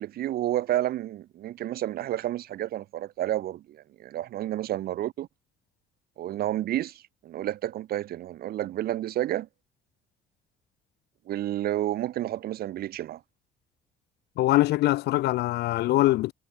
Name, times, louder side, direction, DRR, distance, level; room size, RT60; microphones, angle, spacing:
voice 1, 0.0-5.3 6.2-9.5 11.3-13.2, right 13 dB, 65° right, 1.7 m, -30 dB
voice 2, 14.4-16.3, left 17 dB, 75° left, 1.1 m, -23 dB
cardioid pair, 110°, 17 cm